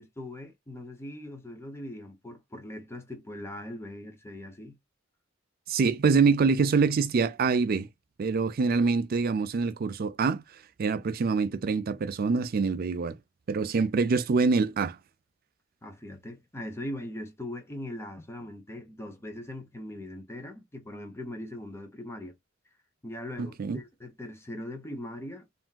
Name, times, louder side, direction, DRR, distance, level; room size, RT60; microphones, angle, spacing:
voice 1, 0.0-4.8 13.6-13.7 15.8-22.3 23.0-25.5, left 1 dB, 15° left, 0.7 m, -40 dB
voice 2, 5.7-7.9 8.2-10.4 10.8-13.2 13.5-15.0 23.4-23.8, right 4 dB, 50° right, 0.4 m, -25 dB
3.3 x 2.5 x 2.2 m
head